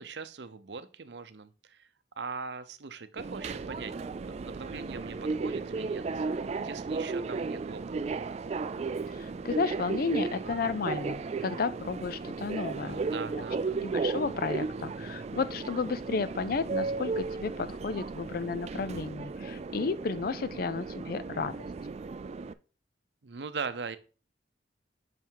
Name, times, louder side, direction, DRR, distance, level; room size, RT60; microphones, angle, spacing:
voice 1, 0.0-1.9 2.2-3.9 4.2-7.8 12.8-13.8 23.2-24.0, right 5 dB, 70° right, 0.7 m, -41 dB
Subway metro underground, 3.2-22.5, right 4 dB, 35° right, 0.3 m, -35 dB
voice 2, 9.2-13.0 13.8-21.6, left 4 dB, 55° left, 0.4 m, -33 dB
5.9 x 5.6 x 4.6 m
head